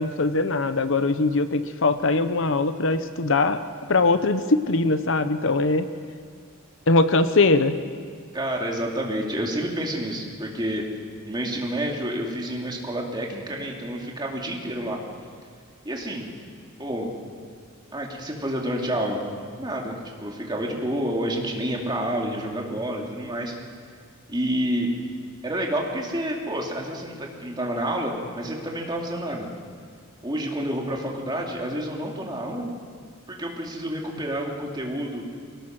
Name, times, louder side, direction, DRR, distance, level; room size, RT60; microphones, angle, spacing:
voice 1, 0.0-3.6 3.9-5.9 6.9-7.7, left 3 dB, 65° left, 11 dB, 0.9 m, -21 dB
voice 2, 8.3-10.8 11.3-15.0 15.8-16.3 16.8-17.1 17.9-19.2 19.6-23.5 24.3-24.9 25.4-29.5 30.2-32.7 33.3-35.2, right 1 dB, 20° right, -1 dB, 2.8 m, -29 dB
24.0 x 18.5 x 6.1 m, 2.1 s
head